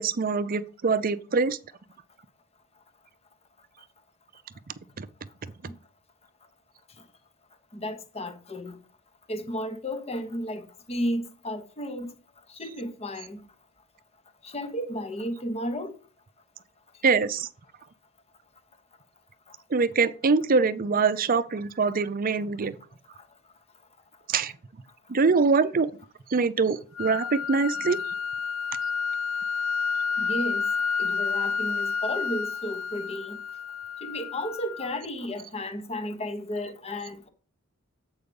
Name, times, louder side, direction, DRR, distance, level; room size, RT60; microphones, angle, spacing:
voice 1, 0.0-1.6 5.0-5.1 17.0-17.5 19.7-22.8 24.3-24.5 25.1-25.9 26.3-28.0, right 4 dB, 40° right, 0.5 m, -24 dB
voice 2, 7.7-8.8 9.3-12.1 12.5-13.4 14.4-15.9 30.2-33.4 34.0-37.3, equal, 30° left, 1.0 m, -33 dB
sound 1, 27.0-35.0, left 5 dB, 70° left, 0.4 m, -30 dB
8.1 x 4.8 x 5.3 m
head